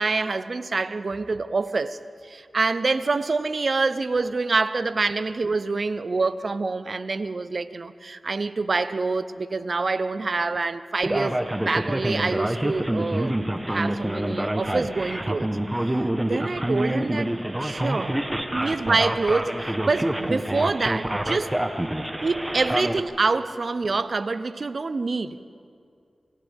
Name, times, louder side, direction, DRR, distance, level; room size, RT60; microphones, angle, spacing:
voice 1, 0.0-2.0 2.2-11.4 11.6-13.3 13.7-15.5 15.8-17.3 17.6-18.2 18.5-21.5 22.2-25.4, right 3 dB, 60° right, 0.8 m, -26 dB
Male speech man speaking, 11.0-23.0, right 1 dB, 15° right, 1.4 m, -27 dB
27.5 x 25.5 x 3.7 m
cardioid pair, 45°, 0 cm